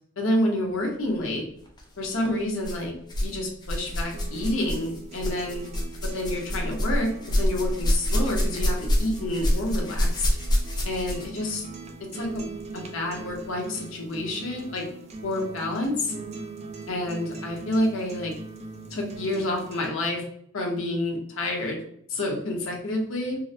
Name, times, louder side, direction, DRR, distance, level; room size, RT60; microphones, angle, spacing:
voice 1, 0.2-1.4 2.0-2.9 3.2-5.7 6.0-7.1 7.4-10.3 10.8-11.6 12.1-12.4 12.7-14.8 15.2-16.1 16.9-18.3 18.9-20.2 20.5-21.8 22.1-23.4, left 1 dB, 70° left, 0 dB, 0.9 m, -28 dB
sound 1, 1.7-1.8 2.6-3.3 3.6-11.4 12.3-12.4 13.2-13.3, equal, 20° left, 0.6 m, -27 dB
sound 2, 3.9-19.9, right 3 dB, 30° right, 0.4 m, -41 dB
3.8 x 2.0 x 2.7 m, 0.66 s
head